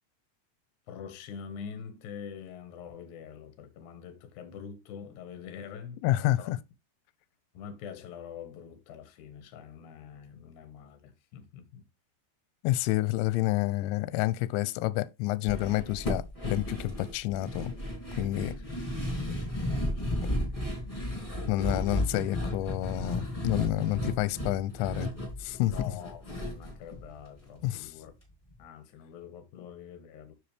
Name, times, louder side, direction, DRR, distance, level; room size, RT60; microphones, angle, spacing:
voice 1, 0.9-6.5 7.5-11.8 18.6-18.9 19.1-20.6 25.6-28.1 28.6-30.3, left 7 dB, 70° left, 1.9 m, -45 dB
voice 2, 6.0-6.6 12.6-17.7 18.2-18.5 21.5-25.1 25.4-25.7 27.6-27.9, left 16 dB, 85° left, 2.8 m, -29 dB
sound 1, 15.5-27.8 28.0-28.1 28.5-28.6, left 1 dB, 10° left, 2.2 m, -34 dB
7.1 x 7.0 x 3.4 m
omnidirectional pair, 5.5 m